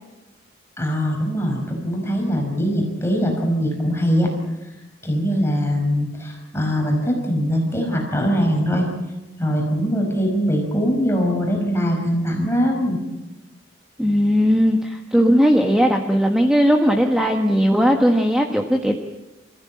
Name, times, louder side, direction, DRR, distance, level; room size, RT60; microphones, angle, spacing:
voice 1, 0.8-4.3 5.0-8.9 9.4-13.0, equal, 15° left, 1 dB, 5.3 m, -21 dB
voice 2, 14.0-19.0, equal, 5° right, 3 dB, 1.4 m, -17 dB
28.0 x 15.0 x 8.6 m, 1.0 s
head